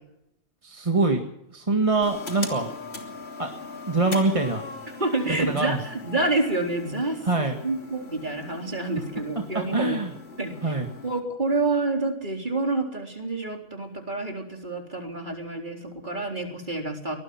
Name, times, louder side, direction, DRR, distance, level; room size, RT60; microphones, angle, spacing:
voice 1, 0.6-1.2 1.5-2.7 3.4-3.5 3.9-4.6 5.3-5.8 7.2-7.6 9.4-10.1 10.6-10.9, right 3 dB, 30° right, 3 dB, 1.9 m, -24 dB
sound 1, 2.0-11.2, left 3 dB, 70° left, 3.3 m, -40 dB
voice 2, 5.0-7.2 7.6-10.0 10.4-10.7 11.0-17.2, right 2 dB, 45° right, 3 dB, 4.1 m, -28 dB
23.5 x 19.0 x 5.9 m, 0.80 s
omnidirectional pair, 1.1 m